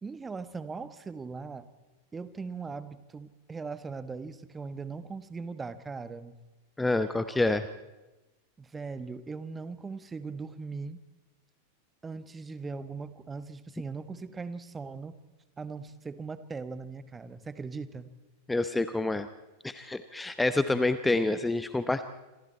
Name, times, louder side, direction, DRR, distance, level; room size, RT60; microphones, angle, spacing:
voice 1, 0.0-1.6 2.1-6.3 8.6-11.0 12.0-15.1 15.6-18.1, right 4 dB, 15° right, 13 dB, 1.4 m, -39 dB
voice 2, 6.8-7.7 18.5-19.3 19.6-22.0, left 2 dB, 5° left, 11 dB, 0.9 m, -27 dB
27.5 x 26.0 x 4.4 m, 1.1 s
figure-of-eight pair, 90°, 0 cm